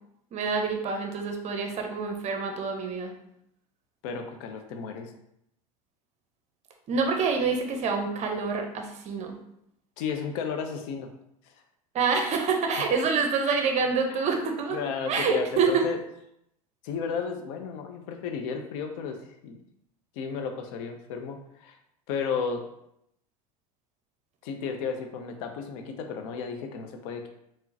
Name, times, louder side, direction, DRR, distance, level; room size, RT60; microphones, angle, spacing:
voice 1, 0.3-3.1 6.9-9.3 11.9-14.8 15.1-15.9, right 5 dB, 35° right, 3 dB, 0.6 m, -27 dB
voice 2, 4.0-5.1 10.0-11.1 11.5-11.6 14.1-14.2 14.7-16.0 16.8-19.2 19.4-19.6 20.2-21.8 22.1-22.7 24.4-27.3, left 6 dB, 60° left, 5 dB, 0.5 m, -33 dB
3.6 x 2.1 x 2.7 m, 0.77 s
hypercardioid pair, 80°, 19 cm